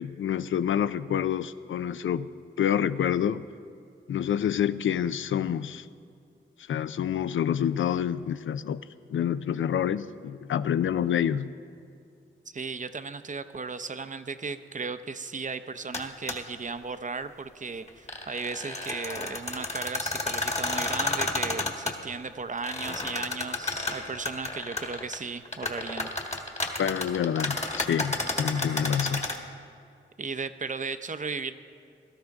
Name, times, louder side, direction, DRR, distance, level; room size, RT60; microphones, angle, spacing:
voice 1, 0.0-2.3 2.6-3.4 4.1-5.9 6.7-8.8 9.1-11.5 26.8-29.3, left 9 dB, 70° left, 15 dB, 0.4 m, -27 dB
voice 2, 12.5-26.1 30.2-31.5, right 4 dB, 35° right, 11 dB, 0.6 m, -36 dB
sound 1, 15.9-16.0 16.3-16.4 17.9-21.9 22.6-25.2 25.5-29.4, left 2 dB, 30° left, 1.6 m, -31 dB
17.0 x 13.0 x 3.6 m, 2.4 s
cardioid pair, 50°, 21 cm